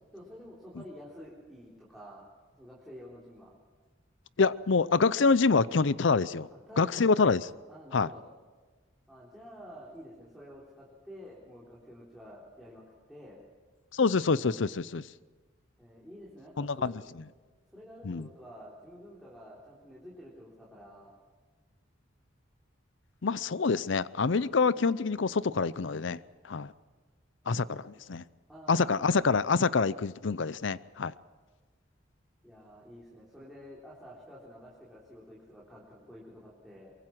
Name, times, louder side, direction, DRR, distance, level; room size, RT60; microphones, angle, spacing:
voice 1, 0.1-2.3 2.5-3.5 5.7-5.8 6.5-7.1 7.7-8.2 9.1-13.4 15.8-17.1 17.7-21.1 27.7-27.8 28.5-29.4 32.4-36.9, equal, ahead, 3.6 m, -49 dB
voice 2, 4.4-6.5 6.8-7.4 7.9-8.1 13.9-15.0 16.6-16.9 18.0-18.3 23.2-26.2 26.5-26.7 27.5-27.8 28.1-28.2 28.7-31.1, left 4 dB, 65° left, 0.6 m, -26 dB
23.5 x 23.0 x 6.0 m
head